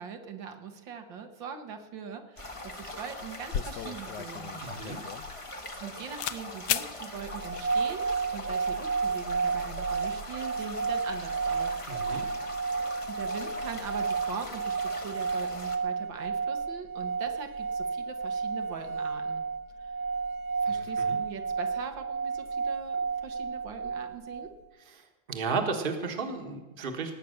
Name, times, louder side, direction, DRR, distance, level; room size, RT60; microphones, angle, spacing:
voice 1, 0.0-4.6 5.8-8.1 8.3-11.8 13.1-19.4 20.6-24.5, right 6 dB, 80° right, 5 dB, 2.0 m, -41 dB
sound 1, 2.4-15.8, left 1 dB, 20° left, 1.0 m, -42 dB
sound 2, 2.8-2.9 3.2-5.9 6.2-6.4 6.7-6.9, left 10 dB, 75° left, 1.2 m, -34 dB
voice 2, 4.6-5.0 11.9-12.2 20.6-21.2 24.9-27.1, right 4 dB, 30° right, 5 dB, 1.3 m, -34 dB
sound 3, 7.3-24.5, right 5 dB, 60° right, 1.4 m, -32 dB
18.0 x 8.4 x 6.5 m, 1.1 s
omnidirectional pair, 2.0 m